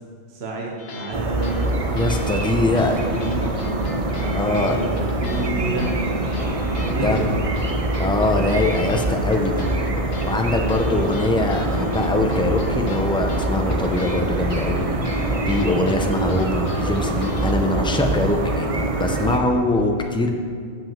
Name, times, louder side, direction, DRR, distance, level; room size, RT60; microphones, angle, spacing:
voice 1, 0.3-1.8 2.6-3.6 4.2-5.9 6.8-7.5 10.9-11.2, right 3 dB, 65° right, -1 dB, 1.3 m, -30 dB
sound 1, 0.8-1.2 1.4-5.5 5.8-17.5, left 4 dB, 65° left, 1.1 m, -39 dB
sound 2, 1.1-19.4, right 2 dB, 35° right, 0.7 m, -24 dB
voice 2, 1.9-3.1 4.3-4.8 7.0-7.3 8.0-9.7 10.3-14.9 15.5-20.3, left 2 dB, 5° left, 3 dB, 0.5 m, -22 dB
7.6 x 6.0 x 7.3 m, 2.1 s
omnidirectional pair, 1.2 m